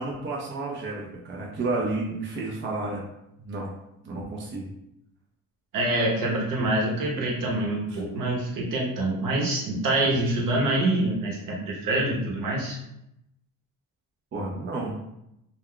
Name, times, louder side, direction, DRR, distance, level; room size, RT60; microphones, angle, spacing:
voice 1, 0.0-3.0 3.4-3.7 4.0-4.7 7.9-8.0 14.3-15.0, right 2 dB, 35° right, -2 dB, 0.5 m, -31 dB
voice 2, 5.7-12.8, right 1 dB, 65° right, -2 dB, 1.0 m, -26 dB
2.3 x 2.2 x 3.6 m, 0.83 s
cardioid pair, 95°, 36 cm